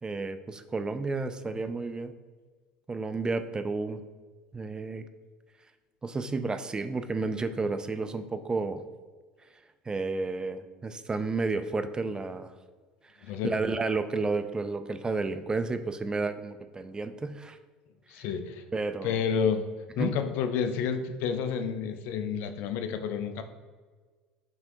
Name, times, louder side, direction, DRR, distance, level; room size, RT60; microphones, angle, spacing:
voice 1, 0.0-2.1 2.9-4.0 4.5-5.1 6.0-8.8 9.9-12.5 13.0-17.6 18.2-18.3 18.7-19.2 20.0-20.1, right 3 dB, 20° right, 10 dB, 0.3 m, -31 dB
voice 2, 13.2-13.5 18.1-18.6 19.0-19.7 20.0-23.4, left 7 dB, 65° left, 8 dB, 0.4 m, -30 dB
5.4 x 3.3 x 2.6 m, 1.4 s
hypercardioid pair, 75°, 4 cm